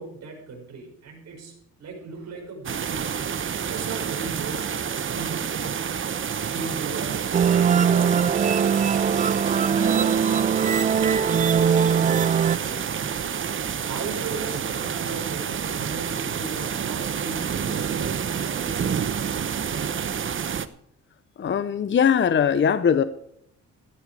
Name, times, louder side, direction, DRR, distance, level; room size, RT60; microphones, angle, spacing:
voice 1, 0.0-1.5 1.8-3.2 3.6-5.8 6.5-7.2 7.5-8.7 9.8-13.3 13.8-19.1, right 4 dB, 60° right, 1 dB, 5.8 m, -37 dB
sound 1, 2.6-20.7, right 7 dB, 40° right, 1.0 m, -29 dB
sound 2, 7.3-12.6, right 7 dB, 25° right, 0.4 m, -21 dB
voice 2, 21.4-23.0, left 7 dB, 40° left, 12 dB, 0.8 m, -20 dB
14.0 x 12.0 x 4.8 m, 0.70 s
cardioid pair, 90°, 30 cm